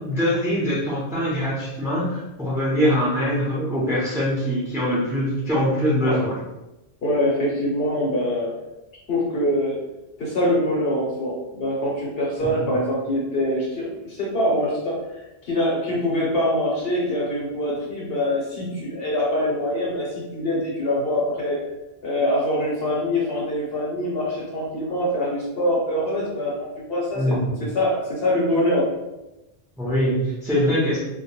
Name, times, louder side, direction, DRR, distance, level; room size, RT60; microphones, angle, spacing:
voice 1, 0.0-6.3 12.6-12.7 27.1-27.7 29.8-31.0, equal, 5° right, -8 dB, 0.6 m, -23 dB
voice 2, 7.0-8.5 9.1-9.8 10.2-15.0 15.4-21.6 22.0-27.3 27.6-28.9, left 1 dB, 65° left, -4 dB, 0.9 m, -24 dB
2.2 x 2.2 x 2.9 m, 0.98 s
omnidirectional pair, 1.1 m